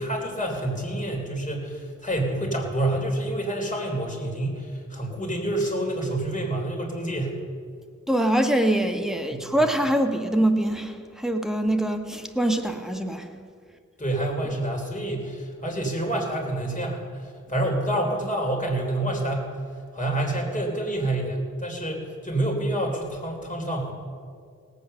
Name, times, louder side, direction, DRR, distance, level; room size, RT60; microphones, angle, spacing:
voice 1, 0.0-7.3 9.3-9.6 14.0-19.5 19.9-23.9, right 1 dB, 25° left, 3.2 m, -28 dB
voice 2, 8.1-13.3, right 1 dB, ahead, 1.2 m, -24 dB
17.5 x 8.3 x 6.5 m
wide cardioid pair, 70°, 31 cm